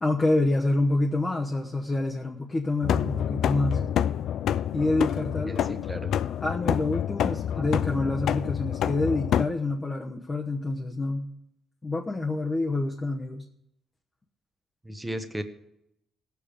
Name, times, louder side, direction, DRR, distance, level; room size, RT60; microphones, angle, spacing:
voice 1, 0.0-3.8 4.7-5.6 6.4-11.3 11.8-13.5, left 2 dB, 25° left, 1 dB, 1.0 m, -27 dB
sound 1, 2.8-9.5, left 10 dB, 75° left, 0.4 m, -27 dB
voice 2, 5.5-6.1 7.6-7.7 14.8-15.4, right 1 dB, 10° right, 8 dB, 1.1 m, -35 dB
17.5 x 7.1 x 5.1 m, 0.82 s
cardioid pair, 90°, 0 cm